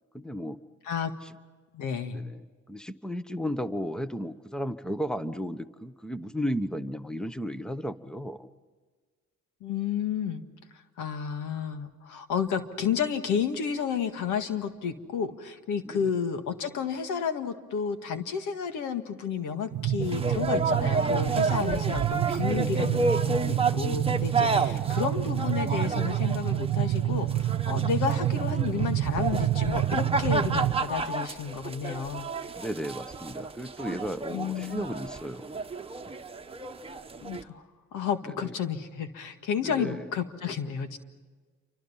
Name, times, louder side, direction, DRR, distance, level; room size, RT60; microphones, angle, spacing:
voice 1, 0.1-0.6 1.2-1.3 2.1-8.5 15.8-16.1 24.5-24.7 32.6-35.6 38.3-38.5 39.6-40.1, equal, ahead, 12 dB, 1.0 m, -34 dB
voice 2, 1.7-2.2 9.6-10.4 11.0-32.3 34.3-34.9 37.2-37.6 37.9-41.0, left 7 dB, 90° left, 8 dB, 1.8 m, -31 dB
sound 1, 19.7-30.8, right 13 dB, 85° right, 1.0 m, -28 dB
sound 2, 20.0-37.4, right 3 dB, 20° right, 1.3 m, -31 dB
28.5 x 25.5 x 5.7 m, 1.4 s
cardioid pair, 90°, 30 cm